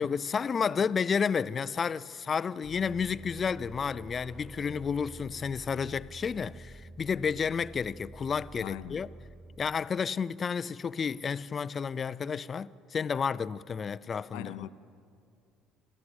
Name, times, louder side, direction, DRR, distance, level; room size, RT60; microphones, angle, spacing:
voice 1, 0.0-9.1 9.6-14.7, left 6 dB, 40° left, 0.6 m, -31 dB
sound 1, 2.6-10.1, right 1 dB, 5° right, 0.8 m, -48 dB
voice 2, 8.6-9.1 14.3-14.7, left 14 dB, 75° left, 0.8 m, -41 dB
27.0 x 14.5 x 8.2 m
hypercardioid pair, 60°, 0 cm